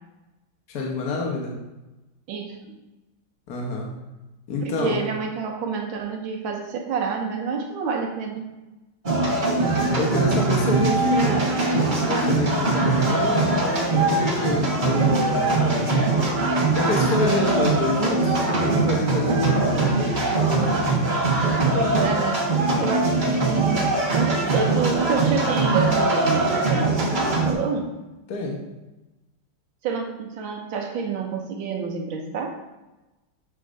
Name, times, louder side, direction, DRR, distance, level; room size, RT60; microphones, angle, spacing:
voice 1, 0.7-1.5 3.5-3.9 4.5-5.0 9.9-20.3 23.1-23.4 28.3-28.6, left 2 dB, 55° left, -1 dB, 1.4 m, -28 dB
voice 2, 2.3-2.8 4.6-8.5 21.7-22.5 22.8-28.0 29.8-32.5, right 5 dB, 70° right, 3 dB, 1.5 m, -28 dB
sound 1, 9.0-27.5, right 3 dB, 30° right, 1.1 m, -22 dB
9.1 x 6.5 x 2.6 m, 1.1 s
omnidirectional pair, 2.2 m